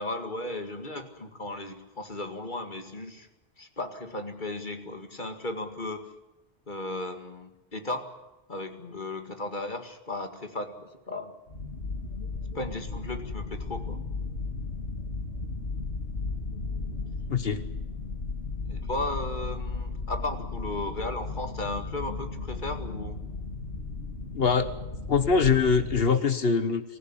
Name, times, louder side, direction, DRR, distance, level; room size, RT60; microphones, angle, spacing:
voice 1, 0.0-3.3 3.6-6.1 6.7-8.1 8.5-11.4 12.5-14.0 18.7-23.2, left 2 dB, 50° left, 6 dB, 2.3 m, -35 dB
sound 1, 11.5-26.1, left 3 dB, 90° left, 2.4 m, -35 dB
voice 2, 24.3-24.7 25.1-26.8, left 5 dB, 65° left, 11 dB, 1.4 m, -23 dB
24.0 x 15.5 x 9.9 m, 1.0 s
omnidirectional pair, 1.1 m